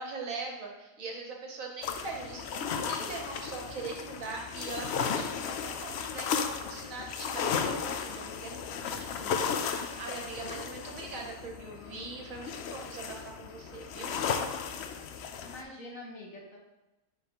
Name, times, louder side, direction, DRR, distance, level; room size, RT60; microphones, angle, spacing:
voice 1, 0.0-14.1, right 3 dB, 60° right, 1 dB, 1.3 m, -42 dB
sound 1, 1.8-15.6, left 6 dB, 90° left, 0.5 m, -35 dB
voice 2, 11.8-12.3 15.4-16.6, left 1 dB, 55° left, -2 dB, 1.6 m, -46 dB
9.9 x 4.0 x 2.9 m, 1.0 s
omnidirectional pair, 1.7 m